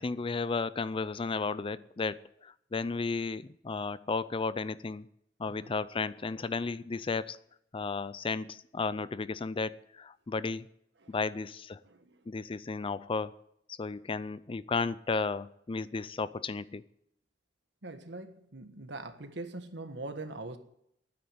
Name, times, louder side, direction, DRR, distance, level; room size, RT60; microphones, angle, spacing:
voice 1, 0.0-5.1 5.4-7.4 7.7-10.7 11.1-11.8 12.3-13.3 13.7-16.8, left 4 dB, 30° left, 0.4 m, -34 dB
voice 2, 11.8-12.2 17.8-20.6, right 2 dB, 70° right, 1.5 m, -42 dB
11.5 x 9.5 x 9.1 m
head